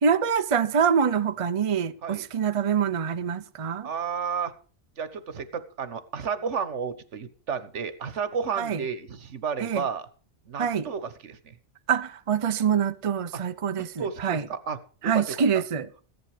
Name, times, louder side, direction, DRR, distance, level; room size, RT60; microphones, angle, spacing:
voice 1, 0.0-3.9 8.6-8.8 9.6-9.9 10.6-10.9 11.9-14.5 15.0-15.9, right 7 dB, 35° right, 0.7 m, -25 dB
voice 2, 3.8-4.5 5.0-10.1 10.5-11.5 13.3-13.4 13.8-15.2, right 6 dB, 80° right, 1.5 m, -32 dB
15.5 x 10.5 x 5.0 m
omnidirectional pair, 1.2 m